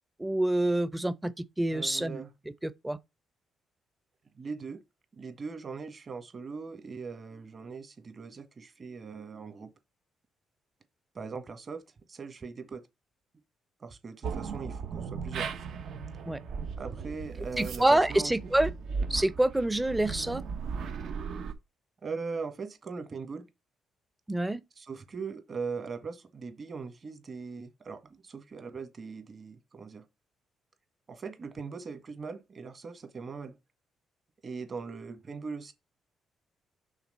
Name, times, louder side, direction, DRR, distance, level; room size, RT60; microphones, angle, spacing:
voice 1, 0.2-2.2 2.6-3.0 16.3-16.4 17.6-18.7 19.1-20.4 24.3-24.6, right 1 dB, 10° right, 0.6 m, -27 dB
voice 2, 1.7-2.3 4.4-4.8 5.2-9.7 11.1-11.8 12.1-12.8 13.8-15.5 16.8-18.3 22.0-23.4 24.8-30.0 31.1-33.6 34.4-35.7, right 5 dB, 40° right, 1.6 m, -40 dB
sound 1, 14.2-21.5, right 5 dB, 70° right, 1.0 m, -37 dB
5.8 x 3.6 x 5.5 m
cardioid pair, 90°, 0 cm